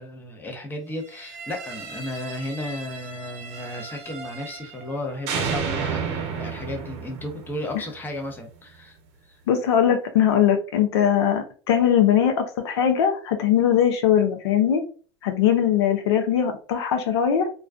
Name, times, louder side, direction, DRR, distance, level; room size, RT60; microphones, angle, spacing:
voice 1, 0.0-9.0 9.3-9.4, left 1 dB, 15° left, 2 dB, 0.7 m, -34 dB
sound 1, 1.1-5.0 5.3-8.3, right 6 dB, 50° right, 0.7 m, -33 dB
voice 2, 9.5-14.8 15.2-17.5, left 9 dB, 75° left, 5 dB, 0.5 m, -20 dB
2.3 x 2.2 x 2.4 m, 0.40 s
hypercardioid pair, 100°, 14 cm